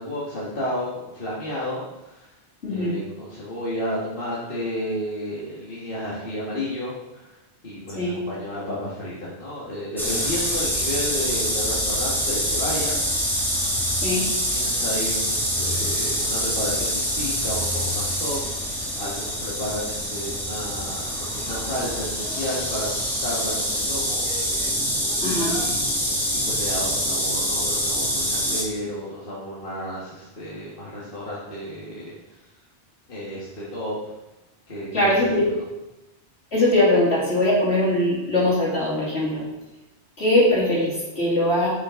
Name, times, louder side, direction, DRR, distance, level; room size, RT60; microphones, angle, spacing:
voice 1, 0.0-2.3 2.7-7.4 7.6-13.1 14.5-18.4 19.0-23.0 23.2-24.5 24.8-24.9 25.2-32.5 33.1-34.1 34.7-35.4, equal, 55° left, -7 dB, 1.9 m, -32 dB
voice 2, 2.6-3.0 7.9-8.2 14.0-14.2 25.2-25.6 34.9-35.4 36.5-39.4 40.2-41.7, left 1 dB, 75° left, -7 dB, 3.4 m, -21 dB
sound 1, 10.0-28.6, equal, ahead, 1.7 m, -25 dB
9.5 x 6.4 x 3.8 m, 0.99 s
omnidirectional pair, 1.1 m